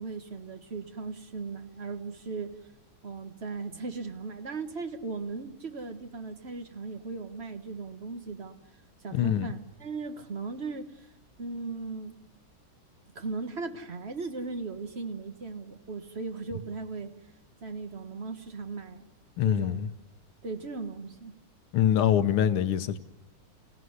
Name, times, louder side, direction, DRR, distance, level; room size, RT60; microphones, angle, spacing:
voice 1, 0.0-2.5 3.0-8.6 9.0-11.1 11.4-12.2 13.2-17.1 17.6-19.1 19.4-19.9 20.4-21.3, right 4 dB, 35° right, 1.6 m, -37 dB
voice 2, 9.1-9.5 19.4-19.9 21.7-23.0, left 10 dB, 85° left, 1.9 m, -24 dB
28.5 x 17.0 x 9.6 m
omnidirectional pair, 2.3 m